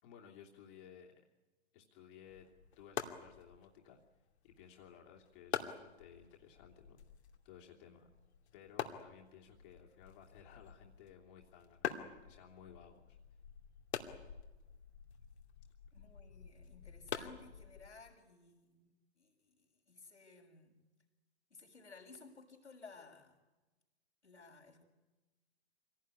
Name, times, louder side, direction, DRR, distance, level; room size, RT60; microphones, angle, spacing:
voice 1, 0.0-1.2 1.7-2.5 2.8-4.0 4.4-7.0 7.4-8.1 8.5-13.2, left 8 dB, 50° left, -1 dB, 3.0 m, -58 dB
sound 1, 2.3-18.1, left 8 dB, 70° left, 2.7 m, -47 dB
voice 2, 15.9-20.8 21.5-23.4 24.2-24.8, left 4 dB, 90° left, -2 dB, 6.1 m, -57 dB
26.0 x 18.0 x 9.8 m, 1.1 s
figure-of-eight pair, 115°, 34 cm